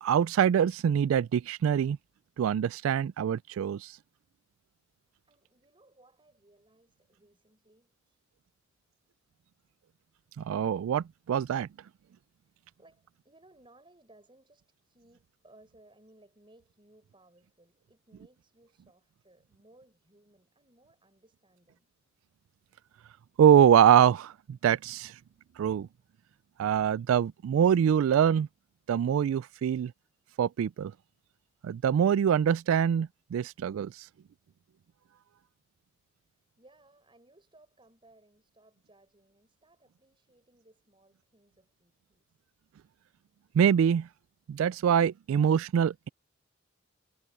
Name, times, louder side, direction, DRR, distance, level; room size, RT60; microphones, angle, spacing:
voice 1, 0.0-2.0 2.4-3.9 10.4-11.7 23.4-25.1 25.6-25.9 26.6-28.5 28.9-29.9 30.4-30.9 31.6-34.1 43.5-44.1 44.5-46.1, right 8 dB, 85° right, 0.3 m, -24 dB
voice 2, 5.2-8.2 12.4-21.9 36.2-42.4, right 2 dB, 25° right, 5.9 m, -62 dB
head